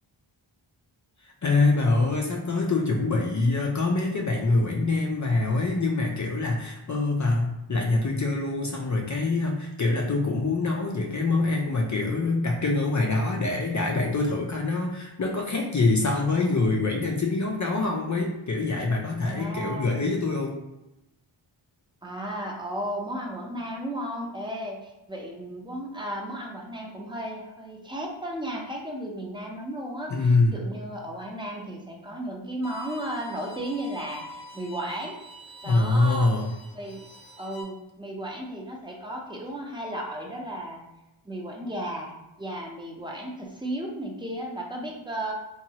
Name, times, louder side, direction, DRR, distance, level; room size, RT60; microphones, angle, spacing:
voice 1, 1.2-20.6 30.1-30.6 35.6-36.5, left 3 dB, 40° left, 0 dB, 0.4 m, -25 dB
voice 2, 19.2-19.9 22.0-35.1 35.6-36.3 36.7-37.0 37.4-40.8 41.2-42.1 42.4-45.3, right 1 dB, 10° right, -1 dB, 0.6 m, -34 dB
Bowed string instrument, 32.6-37.6, equal, 70° left, 0.7 m, -45 dB
2.9 x 2.3 x 2.8 m, 0.94 s
wide cardioid pair, 55°, 49 cm